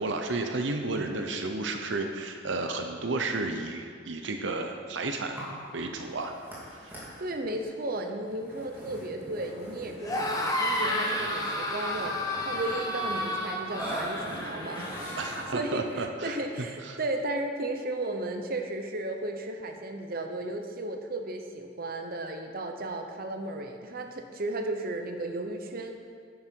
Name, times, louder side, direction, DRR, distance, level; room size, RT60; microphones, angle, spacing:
voice 1, 0.0-5.4 5.7-6.3 6.7-7.1 15.2-16.4 16.8-17.0, right 3 dB, 80° right, 5 dB, 0.8 m, -32 dB
Burping eructation, 5.3-16.0, equal, 10° right, 3.1 m, -43 dB
voice 2, 7.2-14.9 15.5-26.0, right 2 dB, 55° right, 4 dB, 0.9 m, -34 dB
sound 1, 10.0-15.4, left 1 dB, 20° left, 1.3 m, -31 dB
11.0 x 9.5 x 4.6 m, 2.2 s
head